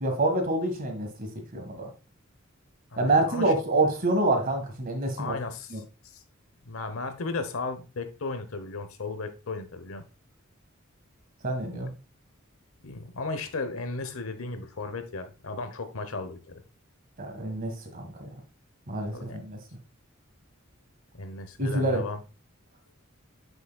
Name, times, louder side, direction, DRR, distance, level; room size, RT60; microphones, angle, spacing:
voice 1, 0.0-1.9 3.0-5.3 5.7-5.8 11.4-11.9 17.2-18.3 18.9-19.6 21.6-22.0, right 2 dB, 45° right, 1.6 m, -27 dB
voice 2, 2.9-3.5 3.8-3.9 5.2-6.2 6.6-10.0 11.7-11.9 12.8-16.6 19.1-19.4 21.1-22.2, left 3 dB, 85° left, 1.0 m, -35 dB
7.9 x 6.2 x 2.3 m
head